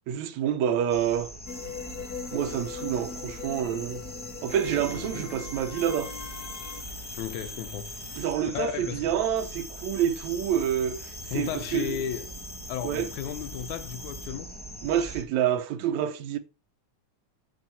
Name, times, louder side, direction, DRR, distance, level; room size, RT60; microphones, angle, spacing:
voice 1, 0.1-1.3 2.3-4.0 4.4-6.1 8.2-12.0 12.8-13.1 14.8-16.4, right 9 dB, 75° right, 2.3 m, -28 dB
sound 1, 0.9-15.2, equal, 5° left, 0.8 m, -42 dB
sound 2, 1.5-6.8, left 5 dB, 50° left, 1.2 m, -40 dB
voice 2, 5.0-5.3 7.2-7.9 8.5-9.1 11.3-12.3 12.7-14.5, left 10 dB, 85° left, 2.2 m, -34 dB
sound 3, 5.8-8.6 9.1-14.3, left 2 dB, 25° left, 2.2 m, -46 dB
9.3 x 4.6 x 7.0 m
omnidirectional pair, 3.4 m